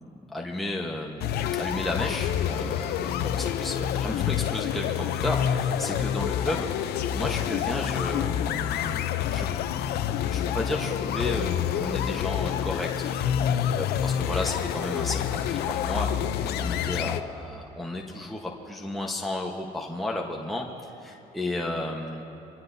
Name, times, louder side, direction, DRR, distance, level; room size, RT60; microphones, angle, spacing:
voice 1, 0.3-9.5 10.2-22.2, left 1 dB, ahead, -2 dB, 1.1 m, -33 dB
sound 1, 1.2-17.2, left 10 dB, 70° left, 0.6 m, -28 dB
25.0 x 16.0 x 2.7 m, 2.8 s
cardioid pair, 110°, 17 cm